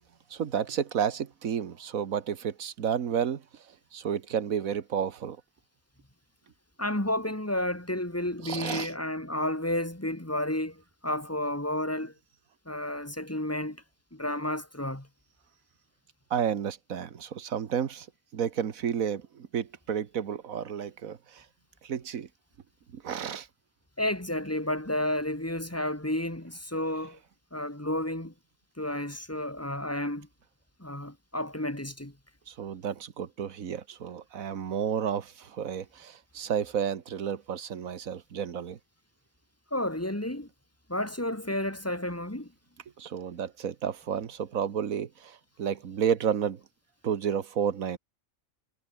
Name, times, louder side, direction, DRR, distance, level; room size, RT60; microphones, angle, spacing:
voice 1, 0.3-3.4 3.9-5.4 8.4-8.9 16.3-18.1 18.3-21.4 21.8-22.3 22.9-23.5 32.5-38.8 43.0-46.6 47.0-48.0, right 8 dB, 75° right, 1.6 m, -31 dB
voice 2, 6.8-12.1 12.7-13.8 14.1-15.1 24.0-27.2 27.5-28.3 28.8-30.3 30.8-32.1 39.7-40.5 40.9-42.5, left 1 dB, 10° left, 2.7 m, -31 dB
omnidirectional pair, 1.5 m